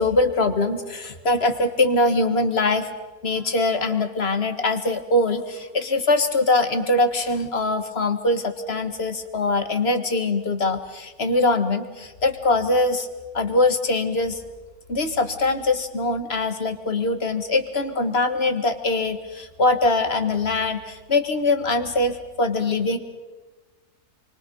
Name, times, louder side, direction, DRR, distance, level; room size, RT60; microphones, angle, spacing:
voice 1, 0.0-2.9 3.2-13.1 13.3-14.4 14.9-23.0, left 2 dB, 40° left, 8 dB, 1.8 m, -22 dB
29.0 x 24.0 x 5.4 m, 1.2 s
omnidirectional pair, 1.7 m